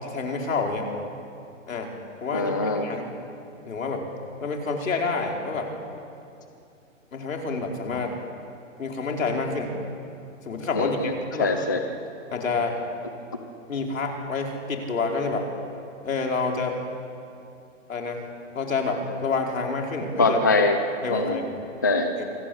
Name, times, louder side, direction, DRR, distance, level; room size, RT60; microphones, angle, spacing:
voice 1, 0.0-0.8 1.7-1.9 2.2-3.1 3.6-4.0 4.4-5.7 7.1-8.1 8.8-9.7 10.4-11.5 12.3-12.7 13.7-15.4 16.0-16.8 17.9-18.2 18.5-20.4 21.0-21.7 22.2-22.3, left 4 dB, 80° left, 1 dB, 5.1 m, -28 dB
voice 2, 2.3-2.9 10.7-11.8 20.2-20.8 21.1-21.4 21.8-22.1, left 3 dB, 15° left, 6 dB, 0.5 m, -23 dB
26.0 x 19.5 x 8.8 m, 2.6 s
hypercardioid pair, 170°, 39 cm